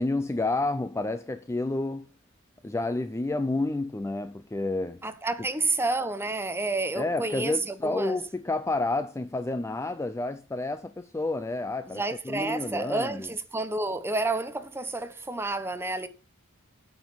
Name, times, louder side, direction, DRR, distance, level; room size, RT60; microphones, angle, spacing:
voice 1, 0.0-2.1 2.6-5.0 7.0-13.3, left 2 dB, 15° left, 0.4 m, -30 dB
voice 2, 5.0-8.2 11.9-16.1, right 2 dB, 10° right, 0.8 m, -30 dB
9.0 x 6.0 x 6.9 m
head